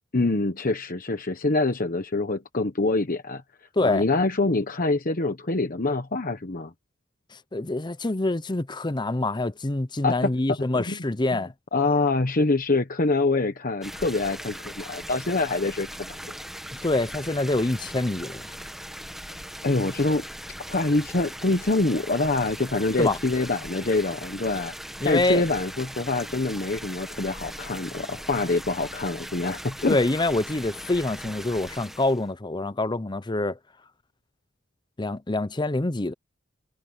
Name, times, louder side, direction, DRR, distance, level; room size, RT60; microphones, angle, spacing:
voice 1, 0.1-3.4 3.8-6.7 10.0-10.2 10.7-11.0 11.7-16.3 19.6-20.2 20.7-24.7 25.0-30.0, left 2 dB, 40° left, 1.1 m, -25 dB
voice 2, 7.3-11.5 16.8-18.4 23.0-23.2 25.0-25.4 29.9-33.6 35.0-36.1, left 2 dB, 20° left, 0.7 m, -25 dB
sound 1, 13.8-32.3, equal, ahead, 1.3 m, -39 dB
head